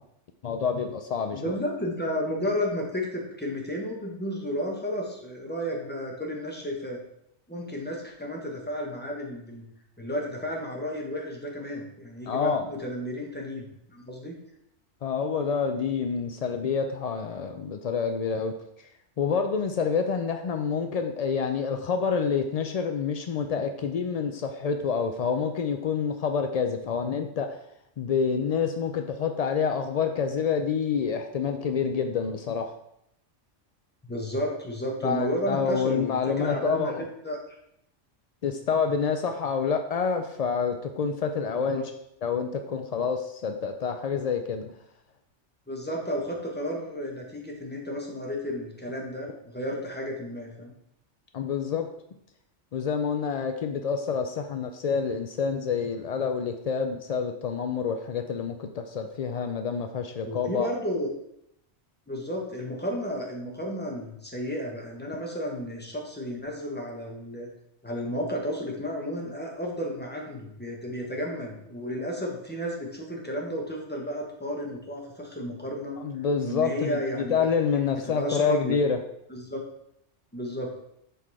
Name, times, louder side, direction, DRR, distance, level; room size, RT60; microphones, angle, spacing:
voice 1, 0.4-1.6 12.3-12.7 15.0-18.5 19.2-27.6 28.0-32.7 35.0-37.0 38.4-41.8 42.2-44.7 51.3-51.9 52.7-60.7 76.0-79.0, left 6 dB, 75° left, 5 dB, 0.3 m, -28 dB
voice 2, 1.3-7.0 7.5-9.7 10.0-14.3 34.0-37.6 41.5-41.9 45.7-50.7 60.2-61.1 62.1-67.5 67.8-76.0 76.4-77.5 77.9-78.8 79.3-79.6 80.3-80.7, equal, 10° left, -1 dB, 1.2 m, -32 dB
6.8 x 3.8 x 4.8 m, 0.77 s
omnidirectional pair, 1.2 m